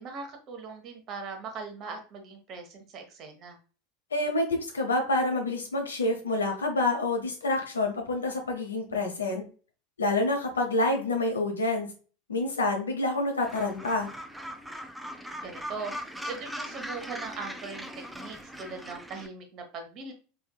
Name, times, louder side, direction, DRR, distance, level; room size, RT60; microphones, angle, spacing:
voice 1, 0.0-3.6 15.4-17.9 18.1-20.1, right 4 dB, 45° right, 4 dB, 1.1 m, -40 dB
voice 2, 4.1-9.4 10.0-11.9 12.3-14.1, left 2 dB, 85° left, 3 dB, 0.9 m, -27 dB
Gull seagull, 13.4-19.3, equal, 5° right, 0.6 m, -40 dB
3.4 x 3.2 x 2.2 m, 0.38 s
hypercardioid pair, 85°, 0 cm